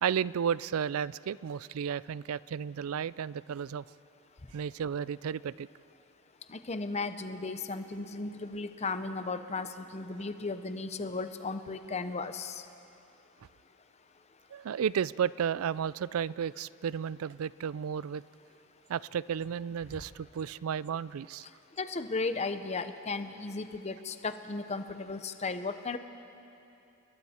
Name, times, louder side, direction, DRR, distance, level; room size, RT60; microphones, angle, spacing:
voice 1, 0.0-3.8 4.5-5.7 14.5-18.2 18.9-21.5, right 8 dB, 75° right, 20 dB, 0.4 m, -33 dB
voice 2, 6.5-12.7 21.8-26.0, left 3 dB, 30° left, 10 dB, 0.7 m, -35 dB
29.5 x 20.5 x 4.4 m, 2.8 s
head